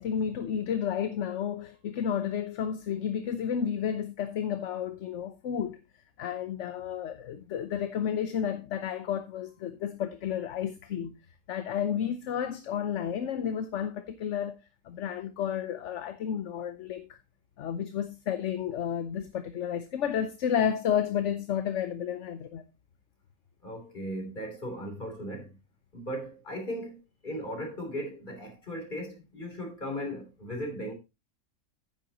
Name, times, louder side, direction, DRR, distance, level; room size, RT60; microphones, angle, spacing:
voice 1, 0.0-5.8 6.2-11.2 11.5-17.2 17.6-22.6, left 8 dB, 60° left, 1.0 m, -31 dB
voice 2, 23.6-25.5 25.9-27.0 27.2-30.9, equal, 35° left, 3.6 m, -37 dB
10.0 x 9.8 x 2.9 m
omnidirectional pair, 1.5 m